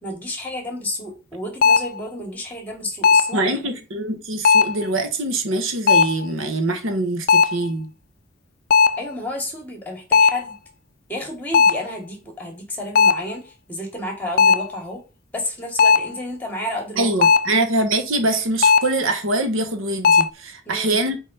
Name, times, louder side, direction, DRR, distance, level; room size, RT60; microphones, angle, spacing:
voice 1, 0.0-3.7 9.0-10.6 11.1-15.0 15.3-17.3 20.7-21.0, left 1 dB, 10° left, 2.6 m, -31 dB
sound 1, 1.6-2.0 3.0-3.4 4.5-4.9 5.9-6.3 7.3-7.7 8.7-9.1 10.1-10.5 11.5-11.9 13.0-13.3 14.4-14.7 15.8-16.2 17.2-17.6 18.6-19.0 20.0-20.3, left 5 dB, 45° left, 0.4 m, -16 dB
voice 2, 3.3-7.9 17.0-21.2, right 2 dB, 70° right, 1.3 m, -23 dB
5.5 x 5.2 x 5.6 m
head